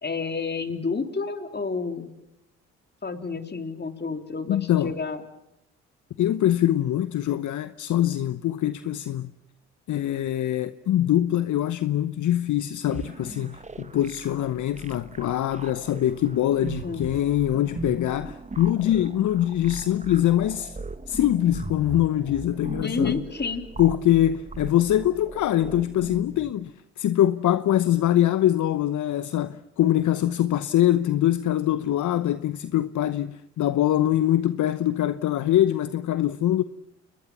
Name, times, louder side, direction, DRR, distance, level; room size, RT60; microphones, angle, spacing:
voice 1, 0.0-2.1 3.0-5.2 16.8-17.1 22.8-23.6, left 4 dB, 30° left, 3.5 m, -30 dB
voice 2, 4.5-4.9 6.2-9.3 9.9-20.8 21.1-23.2 23.8-36.6, left 12 dB, 55° left, 0.9 m, -23 dB
sound 1, 12.9-26.5, right 3 dB, 20° right, 1.5 m, -39 dB
29.5 x 21.0 x 7.3 m
hypercardioid pair, 55°, 35 cm